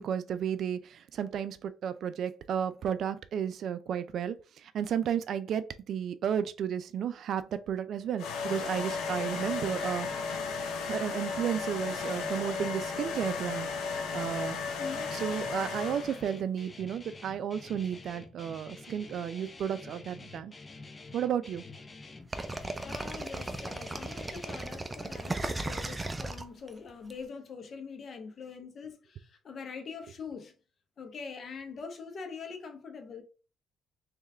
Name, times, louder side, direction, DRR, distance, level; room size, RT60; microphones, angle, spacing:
voice 1, 0.0-4.4 4.6-10.1 10.9-14.6 15.1-20.5 21.1-21.6, right 8 dB, 65° right, 0.4 m, -33 dB
sound 1, 8.2-16.3, left 5 dB, 85° left, 0.9 m, -34 dB
voice 2, 14.8-15.2 20.7-20.9 22.8-30.5 31.0-33.2, left 5 dB, 50° left, 1.0 m, -43 dB
Guitar, 14.9-24.6, left 3 dB, 30° left, 0.7 m, -48 dB
sound 2, 22.3-27.1, right 2 dB, 20° right, 0.5 m, -36 dB
3.5 x 3.2 x 3.4 m
cardioid pair, 80°, 0 cm